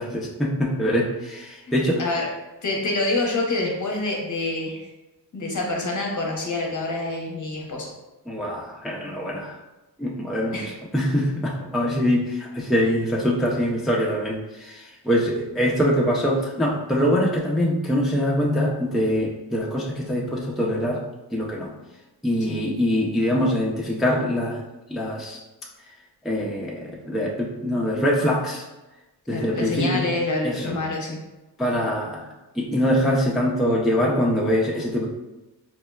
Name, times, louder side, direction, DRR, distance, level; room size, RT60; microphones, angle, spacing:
voice 1, 0.0-2.1 8.3-9.6 10.0-10.6 10.9-21.0 21.3-21.8 22.2-24.6 24.9-25.4 26.2-28.7 29.3-30.1 30.4-30.8 31.6-32.3 32.5-35.1, equal, ahead, -3 dB, 0.4 m, -23 dB
voice 2, 2.6-4.9 5.3-7.9 10.5-10.7 22.5-22.6 29.3-31.2, left 2 dB, 45° left, 0 dB, 0.7 m, -26 dB
4.3 x 2.0 x 2.2 m, 1.1 s
cardioid pair, 65°, 42 cm